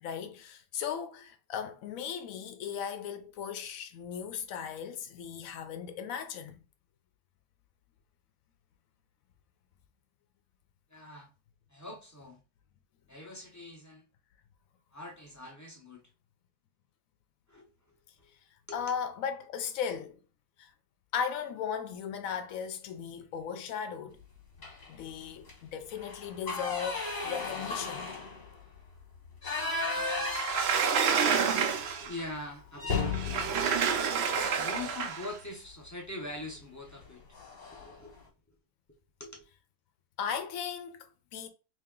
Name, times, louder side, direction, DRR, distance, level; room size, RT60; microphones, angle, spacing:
voice 1, 0.0-6.6 18.7-20.2 20.6-20.7 21.1-24.2 24.9-28.1 40.2-41.5, left 7 dB, 65° left, 0.9 m, -37 dB
voice 2, 10.9-11.3 11.7-12.4 13.1-14.1 14.9-16.0 17.5-17.7 18.2-18.3 18.7-18.9 30.9-33.7 34.0-37.2 37.7-38.2 39.2-39.5, left 2 dB, 20° left, 0.4 m, -43 dB
sound 1, 24.6-25.0 25.4-25.5 25.9-31.9 32.2-32.4 32.8-34.9 36.2-36.5 36.9-37.0 37.3-38.0, left 3 dB, 45° left, 1.3 m, -36 dB
Sliding door, 30.3-32.2 33.1-35.3, right 6 dB, 75° right, 0.5 m, -28 dB
3.1 x 2.8 x 3.6 m
omnidirectional pair, 1.7 m